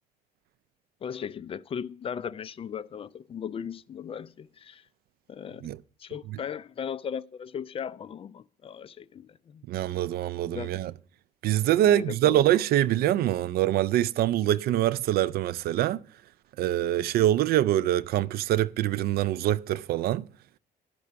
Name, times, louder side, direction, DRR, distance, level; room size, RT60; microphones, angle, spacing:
voice 1, 1.0-4.8 5.3-5.7 6.0-9.6 10.5-10.8 11.8-12.4, left 7 dB, 35° left, 0.4 m, -37 dB
voice 2, 9.7-10.9 11.4-16.0 16.6-20.3, right 13 dB, 65° right, 0.4 m, -24 dB
12.0 x 6.1 x 6.7 m
cardioid pair, 110°, 17 cm